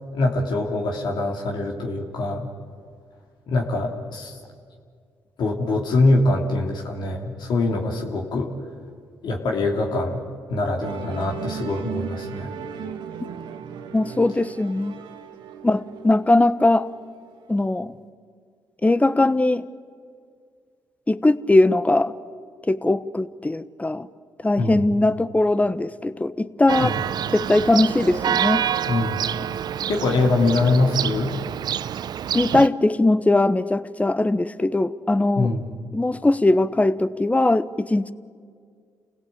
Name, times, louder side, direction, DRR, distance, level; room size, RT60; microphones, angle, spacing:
voice 1, 0.1-2.5 3.5-4.4 5.4-8.5 9.2-10.2 10.5-12.5 24.6-24.8 26.8-27.0 28.9-29.2 29.9-31.3 35.3-35.7, left 2 dB, 70° left, 1 dB, 2.9 m, -23 dB
Musical instrument, 10.8-17.4, right 8 dB, 80° right, 1.6 m, -36 dB
voice 2, 13.9-14.9 15.6-16.9 17.5-17.9 18.8-19.6 21.1-22.1 22.7-24.1 24.4-27.0 27.3-28.6 32.3-35.5 35.9-38.1, left 2 dB, 20° left, 15 dB, 1.0 m, -20 dB
Church bell, 26.7-32.7, right 9 dB, 60° right, 0.6 m, -27 dB
28.0 x 17.0 x 8.6 m, 2.1 s
supercardioid pair, 55°, 8 cm